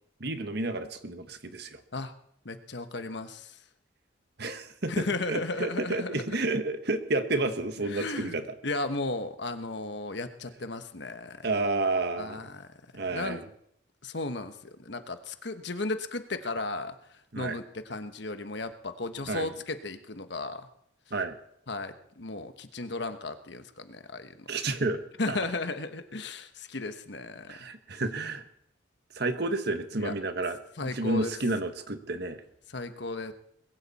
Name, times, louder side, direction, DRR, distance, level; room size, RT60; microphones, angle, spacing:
voice 1, 0.2-1.8 4.4-8.6 11.4-12.4 12.9-13.4 17.3-17.6 19.3-19.5 21.1-21.3 24.5-25.0 25.3-25.4 27.5-28.4 29.1-32.4, right 2 dB, 55° right, 8 dB, 1.4 m, -30 dB
voice 2, 2.4-3.6 4.9-6.4 7.8-8.4 8.6-11.5 12.2-12.7 12.9-13.4 14.0-14.5 14.8-16.9 17.3-20.6 21.7-24.5 25.2-27.6 30.0-30.1 30.8-31.3 32.7-33.3, left 2 dB, 60° left, 9 dB, 1.2 m, -35 dB
21.0 x 15.5 x 4.2 m, 0.71 s
head